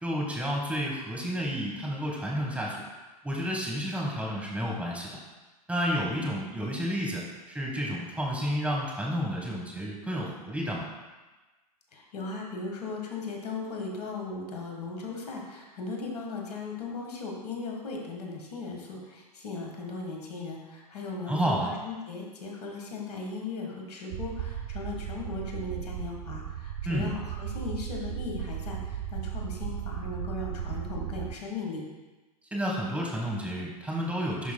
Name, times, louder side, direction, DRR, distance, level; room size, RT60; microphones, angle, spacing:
voice 1, 0.0-2.8 3.2-5.2 5.7-10.9 21.3-21.7 26.8-27.1 32.5-34.5, equal, 5° right, -2 dB, 1.3 m, -31 dB
voice 2, 11.9-31.9, left 3 dB, 70° left, 0 dB, 1.5 m, -37 dB
sound 1, 24.1-31.3, right 10 dB, 55° right, 0.4 m, -36 dB
11.0 x 4.8 x 2.2 m, 1.2 s
hypercardioid pair, 100°, 21 cm